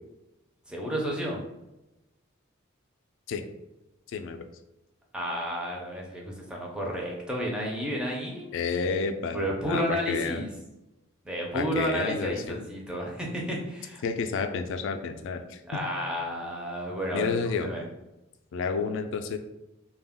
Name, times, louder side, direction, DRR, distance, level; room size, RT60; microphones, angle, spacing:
voice 1, 0.7-1.4 5.1-8.5 9.3-10.5 11.2-14.0 15.7-17.8, equal, 5° right, -2 dB, 0.5 m, -31 dB
voice 2, 4.1-4.4 8.5-10.4 11.5-12.6 14.0-15.9 17.1-17.7 18.5-19.4, left 5 dB, 65° left, 7 dB, 0.3 m, -30 dB
2.2 x 2.0 x 3.5 m, 0.96 s
head